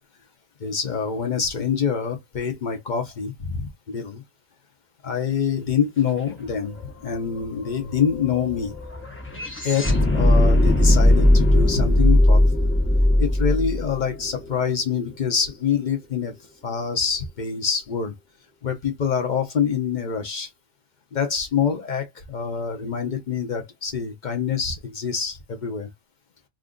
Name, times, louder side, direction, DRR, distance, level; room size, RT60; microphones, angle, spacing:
voice 1, 0.6-4.2 5.0-8.7 9.6-12.7 13.2-16.3 16.6-18.1 18.6-20.5 21.1-25.9, left 7 dB, 55° left, 0.5 m, -26 dB
sound 1, 6.4-6.5 6.8-15.0, left 1 dB, 10° left, 0.7 m, -19 dB
2.6 x 2.5 x 3.6 m
omnidirectional pair, 1.5 m